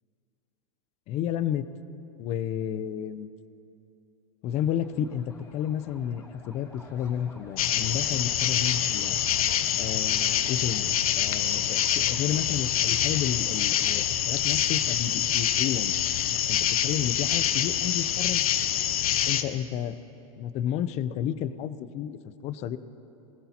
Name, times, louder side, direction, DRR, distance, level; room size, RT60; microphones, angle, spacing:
voice 1, 1.1-1.7 2.2-3.3 4.4-9.2 9.8-15.9 16.5-18.4 19.3-20.0 20.4-22.2 22.4-22.8, left 10 dB, 35° left, 14 dB, 0.6 m, -31 dB
sound 1, 4.5-14.0, left 1 dB, 15° left, 4.1 m, -49 dB
sound 2, 7.6-19.4, left 10 dB, 85° left, 0.8 m, -26 dB
20.0 x 18.0 x 2.9 m, 2.8 s
hypercardioid pair, 125°, 18 cm